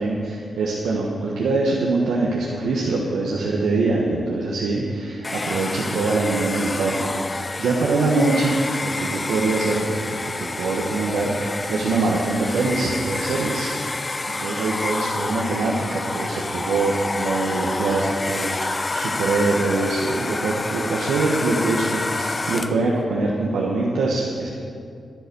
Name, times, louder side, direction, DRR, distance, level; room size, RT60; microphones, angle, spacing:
voice 1, 0.0-8.6 8.8-24.5, right 3 dB, 85° right, -3 dB, 1.3 m, -24 dB
Domestic sounds home sounds, 5.2-22.9, left 2 dB, 35° left, 0.6 m, -28 dB
10.5 x 10.5 x 6.9 m, 2.4 s
supercardioid pair, 45°, 0 cm